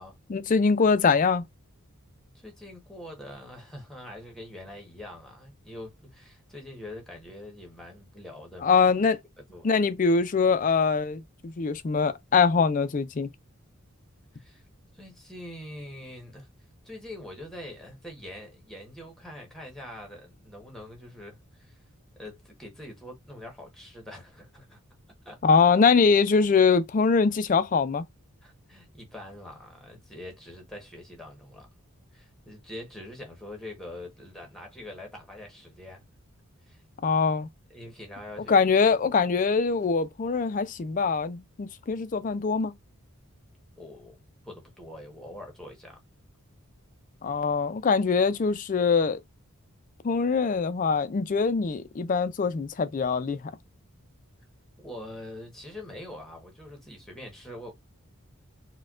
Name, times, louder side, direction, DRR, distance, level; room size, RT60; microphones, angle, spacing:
voice 1, 0.3-1.4 8.6-9.2 9.6-13.3 25.4-28.0 37.0-37.5 38.5-42.7 47.2-49.2 50.0-53.5, left 5 dB, 35° left, 0.3 m, -23 dB
voice 2, 2.3-8.8 9.5-9.7 14.3-14.6 14.9-16.5 16.8-21.8 22.2-24.8 25.2-25.6 28.4-31.7 32.1-36.0 36.7-36.8 37.7-38.5 43.8-44.2 44.4-46.0 54.8-57.7, left 1 dB, ahead, 1.0 m, -44 dB
4.2 x 2.2 x 2.3 m
head